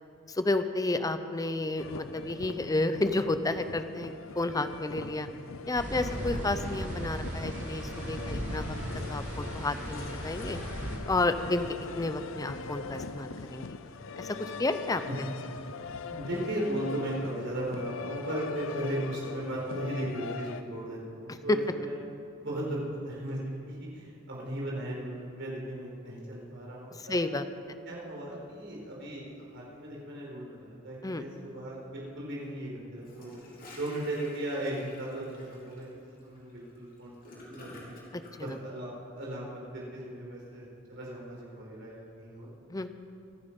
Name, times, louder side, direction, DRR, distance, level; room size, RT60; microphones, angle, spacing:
voice 1, 0.3-5.3 5.7-8.8 9.1-10.6 11.1-11.7 12.0-13.7 14.2-15.0 21.5-21.6 27.0-27.5 31.0-31.2 38.1-38.5 42.7-42.9, left 2 dB, 20° left, 10 dB, 0.6 m, -31 dB
sound 1, 1.8-20.6, left 5 dB, 85° left, 0.6 m, -41 dB
sound 2, 5.8-11.0, equal, 40° right, 2.9 m, -37 dB
voice 2, 16.1-22.0 22.4-27.2 27.9-33.4 33.8-37.2 37.5-38.0 38.4-42.5, right 1 dB, 65° right, -3 dB, 4.4 m, -37 dB
Gurgling / Toilet flush, 33.0-38.3, left 2 dB, 45° left, 3.3 m, -50 dB
24.5 x 9.5 x 5.3 m, 2.5 s
head